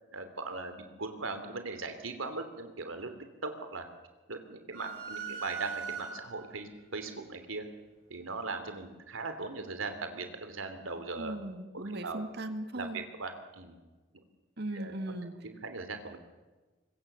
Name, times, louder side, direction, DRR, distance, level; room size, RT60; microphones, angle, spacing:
voice 1, 0.1-3.1 3.4-3.9 4.3-7.6 8.1-11.4 11.7-12.2 12.7-13.8 14.7-15.0 15.4-16.2, right 3 dB, 90° right, 7 dB, 3.1 m, -39 dB
sound 1, 4.7-6.6, right 6 dB, 70° right, 6.2 m, -40 dB
voice 2, 11.2-13.0 14.6-15.3, right 1 dB, 55° right, 8 dB, 2.0 m, -38 dB
24.0 x 22.5 x 6.9 m, 1.2 s
head